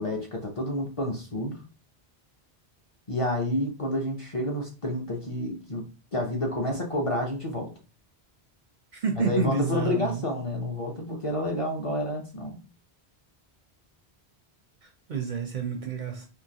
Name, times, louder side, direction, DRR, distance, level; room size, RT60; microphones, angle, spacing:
voice 1, 0.0-1.6 3.1-7.7 9.2-12.6, left 1 dB, 35° left, 0 dB, 0.6 m, -29 dB
voice 2, 8.9-10.2 14.8-16.3, right 5 dB, 55° right, 4 dB, 0.6 m, -29 dB
3.7 x 2.8 x 2.7 m, 0.34 s
omnidirectional pair, 1.1 m